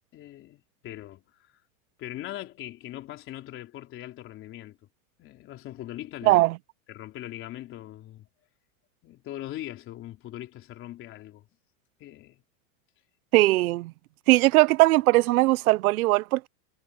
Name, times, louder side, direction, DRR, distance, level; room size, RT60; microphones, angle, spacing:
voice 1, 0.1-1.6 2.0-4.8 5.2-6.4 6.9-8.3 9.0-11.5 12.0-12.4, left 14 dB, 30° left, 3.9 m, -41 dB
voice 2, 13.3-13.9 14.3-16.5, right 19 dB, 90° right, 0.7 m, -20 dB
supercardioid pair, 165°, 42 cm